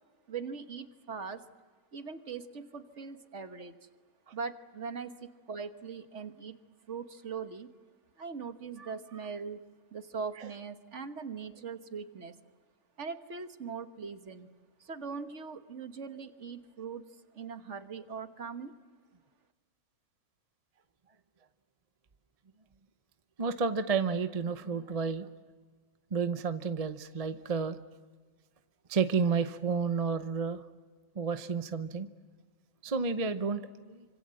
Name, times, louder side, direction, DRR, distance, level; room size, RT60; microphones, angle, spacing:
voice 1, 0.3-1.4 1.9-3.7 4.3-6.6 6.9-7.7 8.2-12.4 13.0-14.5 14.8-18.8, right 5 dB, 55° right, 8 dB, 1.5 m, -41 dB
voice 2, 23.4-25.3 26.1-27.8 28.9-30.6 31.2-32.1 32.8-34.0, right 5 dB, 30° right, 9 dB, 0.7 m, -31 dB
27.5 x 25.5 x 7.7 m, 1.5 s
omnidirectional pair, 1.6 m